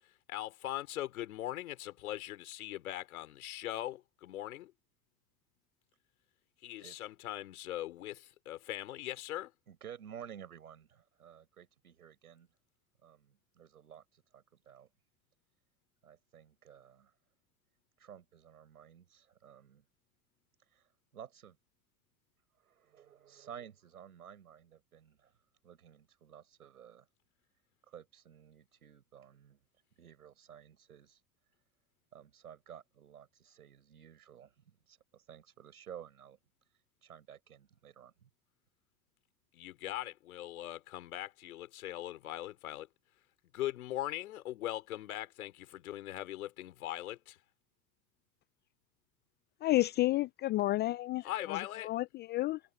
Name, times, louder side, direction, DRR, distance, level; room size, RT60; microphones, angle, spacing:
voice 1, 0.3-4.7 6.6-9.5 39.5-42.9 43.5-47.4 51.2-51.9, left 14 dB, 75° left, 3.8 m, -40 dB
voice 2, 9.7-12.5 13.0-14.9 16.0-17.1 18.0-19.8 20.7-21.6 22.6-25.4 25.6-27.1 27.9-29.6 30.0-31.2 32.1-36.4 37.0-38.3, right 9 dB, 85° right, 5.2 m, -53 dB
voice 3, 49.6-52.6, left 17 dB, 25° left, 0.3 m, -31 dB
hypercardioid pair, 85°, 43 cm